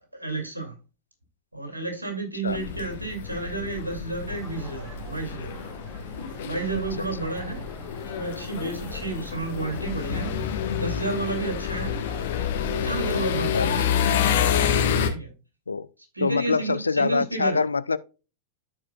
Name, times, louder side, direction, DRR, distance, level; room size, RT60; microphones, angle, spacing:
voice 1, 0.2-0.7 1.5-5.7 6.4-7.6 8.1-12.0 12.6-13.9 15.1-15.3 16.1-17.6, right 3 dB, 85° right, 2.5 m, -32 dB
sound 1, 2.5-15.1, left 7 dB, 60° left, 1.2 m, -28 dB
sound 2, 4.3-13.1, equal, 25° right, 3.1 m, -46 dB
voice 2, 16.2-18.0, left 4 dB, 75° left, 0.4 m, -24 dB
13.5 x 4.9 x 2.3 m
figure-of-eight pair, 90°, 0 cm